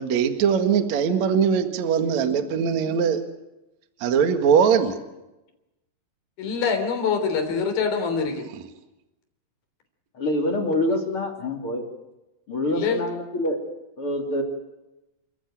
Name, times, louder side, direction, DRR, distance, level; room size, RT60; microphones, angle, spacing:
voice 1, 0.0-3.2 4.0-5.0, right 7 dB, 50° right, 7 dB, 2.5 m, -21 dB
voice 2, 6.4-8.5 12.7-13.0, left 5 dB, 60° left, 5 dB, 5.1 m, -25 dB
voice 3, 10.1-11.9 12.5-13.6 14.0-14.4, left 1 dB, 35° left, 3 dB, 3.3 m, -26 dB
29.0 x 14.5 x 9.2 m, 0.97 s
omnidirectional pair, 5.0 m